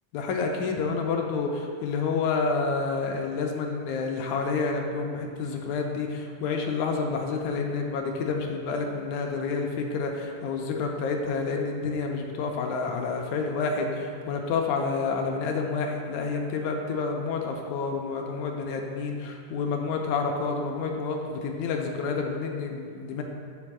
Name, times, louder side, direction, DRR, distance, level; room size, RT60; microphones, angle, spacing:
voice 1, 0.1-23.2, left 4 dB, 80° left, 2 dB, 1.8 m, -29 dB
5.3 x 4.4 x 6.0 m, 2.1 s
omnidirectional pair, 3.6 m